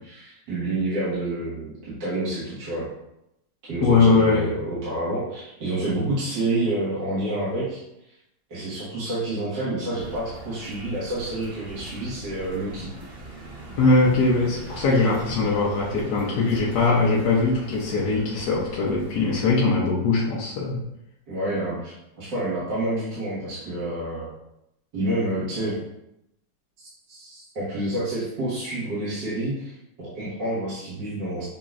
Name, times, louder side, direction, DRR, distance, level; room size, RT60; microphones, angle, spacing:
voice 1, 0.1-2.9 3.7-7.8 8.5-12.9 21.3-24.3 24.9-25.8 27.1-31.4, right 1 dB, 60° right, -11 dB, 2.1 m, -28 dB
voice 2, 3.8-4.4 13.8-20.8, left 3 dB, 60° left, -5 dB, 1.2 m, -21 dB
sound 1, 9.9-19.5, right 1 dB, 40° right, 0.9 m, -41 dB
6.8 x 2.9 x 2.5 m, 0.83 s
omnidirectional pair, 2.3 m